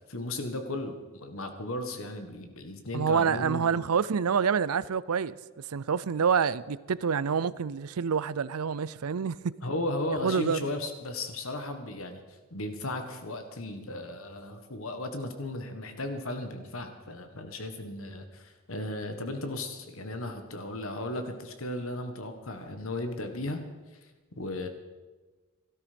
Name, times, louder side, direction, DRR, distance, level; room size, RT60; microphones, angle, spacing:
voice 1, 0.1-3.8 9.6-23.6 23.9-24.1 24.4-24.7, left 1 dB, 70° left, 1.6 m, -35 dB
voice 2, 2.9-5.3 5.7-9.5 10.2-10.6, right 6 dB, 85° right, 0.5 m, -27 dB
17.0 x 13.0 x 5.2 m
head